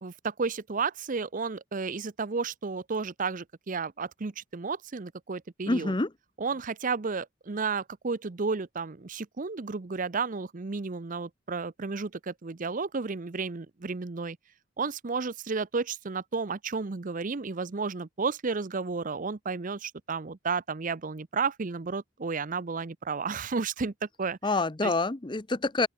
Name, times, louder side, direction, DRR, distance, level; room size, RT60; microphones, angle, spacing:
voice 1, 0.0-5.9 6.4-14.4 14.8-23.9 24.2-24.4 24.8-24.9, right 4 dB, 40° right, 0.6 m, -32 dB
voice 2, 5.7-6.1 24.4-25.9, left 2 dB, 25° left, 0.7 m, -27 dB
open air
head